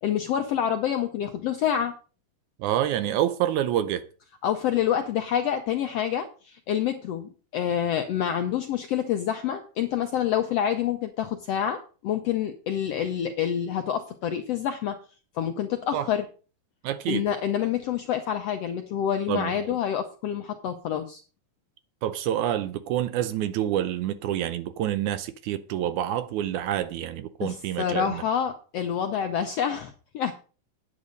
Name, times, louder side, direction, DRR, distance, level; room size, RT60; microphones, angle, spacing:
voice 1, 0.0-1.9 4.4-15.0 15.3-16.2 17.1-21.2 27.4-30.3, left 9 dB, 75° left, 1.4 m, -27 dB
voice 2, 2.6-4.0 15.9-16.1 16.8-17.3 19.3-19.8 22.0-28.2, right 11 dB, 75° right, 1.9 m, -27 dB
9.6 x 8.5 x 5.1 m
omnidirectional pair, 3.8 m